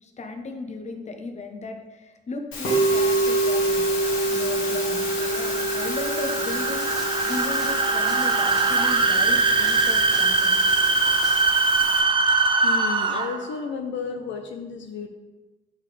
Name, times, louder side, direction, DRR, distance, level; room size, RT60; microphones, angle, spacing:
voice 1, 0.0-10.6, left 3 dB, 35° left, 4 dB, 0.9 m, -36 dB
Musical instrument, 2.5-12.0, right 1 dB, 85° left, 1.5 m, -27 dB
sound 1, 2.9-13.5, right 3 dB, 25° right, 0.5 m, -23 dB
sound 2, 6.3-11.4, equal, 5° right, 2.0 m, -41 dB
voice 2, 12.6-15.1, left 5 dB, 70° left, 4 dB, 0.6 m, -32 dB
8.0 x 3.9 x 3.2 m, 1.2 s
cardioid pair, 90°, 20 cm